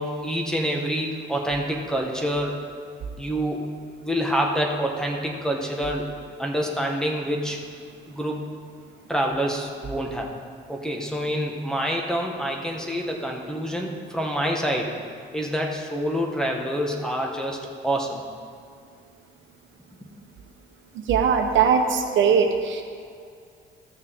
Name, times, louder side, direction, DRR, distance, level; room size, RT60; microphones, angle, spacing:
voice 1, 0.0-2.6 3.2-3.6 4.0-6.1 6.4-7.6 8.1-8.4 9.1-10.3 10.7-14.9 15.3-17.6 17.8-18.2 20.0-20.1, equal, 5° left, 0 dB, 1.4 m, -27 dB
voice 2, 21.1-22.8, right 6 dB, 75° right, 4 dB, 0.9 m, -20 dB
14.5 x 6.4 x 3.6 m, 2.2 s
cardioid pair, 90°, 20 cm